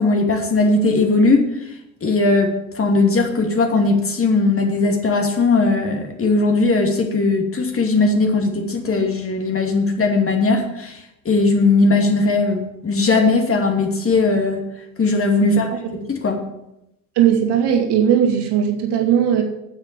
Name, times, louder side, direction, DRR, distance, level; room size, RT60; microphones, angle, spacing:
voice 1, 0.0-1.5 2.0-14.6 15.0-16.4, left 3 dB, 30° left, 3 dB, 2.6 m, -18 dB
voice 2, 17.2-19.4, right 9 dB, 55° right, 3 dB, 2.6 m, -18 dB
9.5 x 7.6 x 7.5 m, 0.85 s
hypercardioid pair, 65°, 47 cm